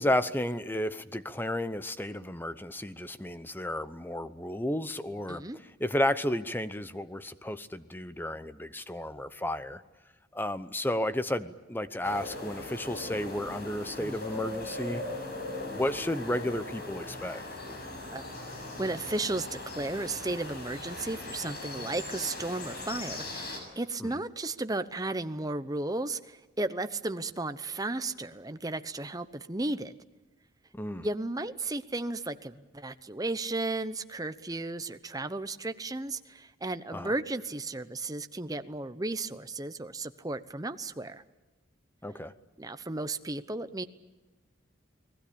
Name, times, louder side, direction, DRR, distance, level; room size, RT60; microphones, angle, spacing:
voice 1, 0.0-5.4 5.8-9.8 10.3-15.0 15.6-17.4 30.7-31.1 36.9-37.1 42.0-42.3, left 1 dB, 10° left, 13 dB, 0.8 m, -32 dB
sound 1, 12.0-23.6, left 2 dB, 55° left, 6.5 m, -39 dB
voice 2, 18.1-29.9 31.0-41.2 42.6-43.8, right 2 dB, 20° right, 11 dB, 0.9 m, -34 dB
29.5 x 20.0 x 8.6 m, 1.1 s
head